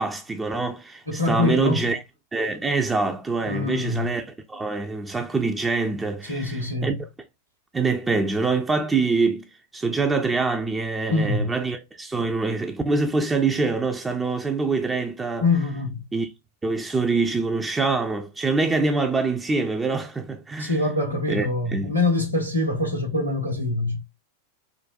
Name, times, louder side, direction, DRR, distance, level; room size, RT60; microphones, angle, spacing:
voice 1, 0.0-2.0 2.3-4.2 4.5-7.0 7.7-9.4 9.7-15.4 16.1-16.3 16.6-20.8 21.3-21.5 21.7-21.9, right 3 dB, 15° right, 0.4 m, -25 dB
voice 2, 1.1-1.9 3.5-4.1 6.2-7.0 11.1-11.5 15.4-16.0 20.6-24.0, left 2 dB, 90° right, 0.9 m, -24 dB
3.7 x 2.1 x 2.4 m
figure-of-eight pair, 90°, 0 cm